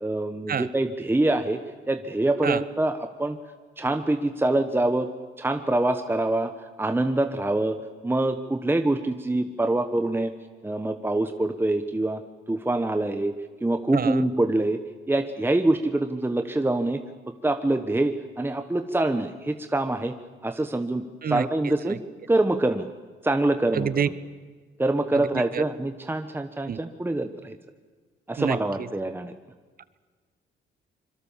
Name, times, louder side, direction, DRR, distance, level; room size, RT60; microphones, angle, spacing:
voice 1, 0.0-1.6 1.9-3.4 3.8-5.1 5.4-6.5 6.8-7.8 8.0-10.3 10.6-12.2 12.5-13.3 13.6-14.8 15.1-17.0 17.4-20.1 20.4-22.0 22.3-22.9 23.2-24.1 24.8-27.6 28.3-29.3, right 2 dB, 10° right, 7 dB, 1.2 m, -25 dB
voice 2, 13.9-14.2 21.2-21.4 21.9-22.0 23.7-24.1 25.1-25.6 26.7-26.8 28.4-28.6, right 7 dB, 45° right, 15 dB, 1.1 m, -27 dB
25.0 x 22.5 x 7.4 m, 1.5 s
cardioid pair, 90°, 20 cm